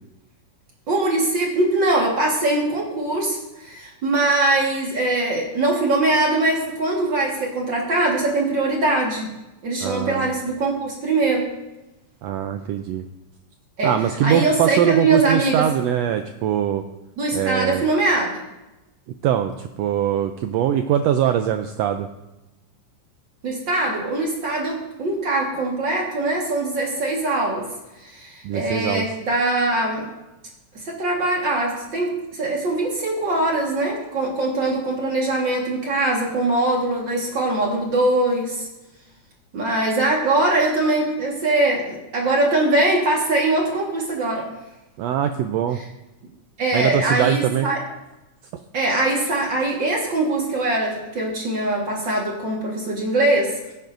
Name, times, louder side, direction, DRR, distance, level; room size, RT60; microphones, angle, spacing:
voice 1, 0.9-9.3 9.6-11.5 13.8-13.9 14.2-15.7 17.2-18.4 23.4-27.7 28.0-30.1 30.7-38.7 39.5-44.5 46.6-47.8 48.7-53.6, right 2 dB, 45° right, -1 dB, 1.9 m, -22 dB
voice 2, 9.8-10.3 12.2-13.0 13.8-16.8 17.3-17.8 19.2-22.1 28.4-29.0 45.0-45.8 46.7-47.7 48.5-48.6, right 10 dB, 85° right, 7 dB, 1.4 m, -22 dB
17.5 x 9.1 x 2.6 m, 1.0 s
omnidirectional pair, 3.5 m